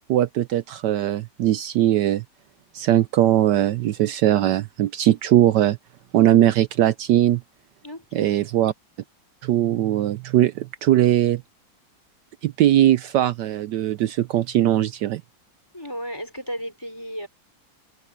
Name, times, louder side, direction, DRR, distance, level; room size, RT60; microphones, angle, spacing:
voice 1, 0.1-2.2 2.7-5.8 6.1-7.4 8.1-8.7 9.4-11.4 12.4-15.2, right 12 dB, 70° right, 1.1 m, -20 dB
voice 2, 7.8-8.6 15.7-17.3, equal, 10° left, 4.9 m, -34 dB
omnidirectional pair, 2.1 m